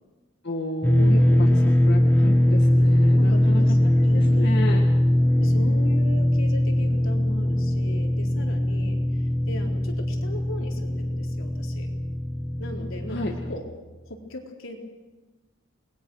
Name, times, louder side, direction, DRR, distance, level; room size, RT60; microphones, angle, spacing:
voice 1, 0.4-1.5 1.9-3.8 4.0-4.8 13.1-13.3, left 1 dB, 55° left, 1 dB, 2.1 m, -32 dB
sound 1, 0.8-13.6, left 1 dB, 10° left, 1.6 m, -21 dB
voice 2, 1.0-1.7 3.1-4.7 5.4-11.9 12.6-13.6 14.1-14.8, left 1 dB, 85° left, 1 dB, 4.0 m, -38 dB
28.5 x 20.5 x 6.5 m, 1.2 s
head